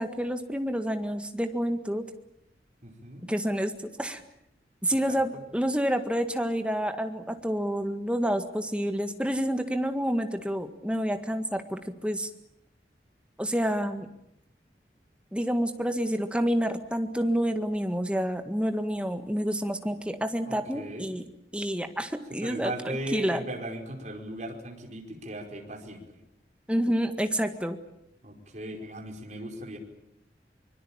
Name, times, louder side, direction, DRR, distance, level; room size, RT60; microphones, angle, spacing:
voice 1, 0.0-2.0 3.3-4.2 4.8-12.3 13.4-14.1 15.3-21.3 21.5-23.4 26.7-27.8, equal, 5° right, 7 dB, 1.8 m, -28 dB
voice 2, 2.8-3.3 5.1-5.2 20.5-21.1 22.4-26.0 28.2-29.8, right 1 dB, 40° right, 2 dB, 5.0 m, -38 dB
24.5 x 22.5 x 8.8 m, 0.79 s
head